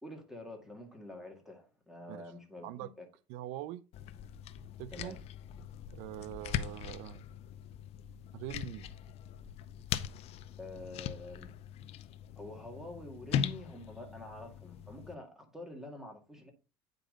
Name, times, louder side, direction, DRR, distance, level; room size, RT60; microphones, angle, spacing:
voice 1, 0.0-3.1 4.9-5.2 6.2-6.3 10.6-11.5 12.4-16.5, left 1 dB, 5° right, 2.2 m, -47 dB
voice 2, 3.3-3.8 4.8-5.2 5.9-7.2 8.3-8.9, right 14 dB, 70° right, 0.4 m, -43 dB
sound 1, 3.9-15.1, left 9 dB, 50° left, 0.6 m, -40 dB
8.7 x 5.3 x 3.9 m
supercardioid pair, 120°, 13 cm